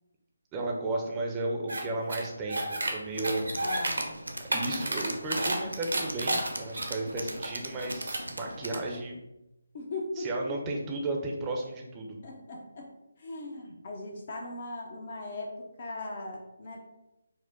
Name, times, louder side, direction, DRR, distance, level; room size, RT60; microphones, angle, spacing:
voice 1, 0.5-3.5 4.5-9.2 10.2-12.2, right 2 dB, 15° right, 0 dB, 0.6 m, -34 dB
sound 1, 1.7-1.8 2.1-2.9 3.2-4.0 4.3-5.6 5.9-7.5 7.8-8.3, right 1 dB, 70° right, 0.9 m, -31 dB
Tools, 3.1-9.0, right 1 dB, 90° right, 0.6 m, -40 dB
voice 2, 3.6-4.2 9.7-10.3 12.2-12.9 13.2-16.9, left 2 dB, 40° left, 0 dB, 0.7 m, -39 dB
4.7 x 2.1 x 3.9 m, 0.92 s
figure-of-eight pair, 150°, 0 cm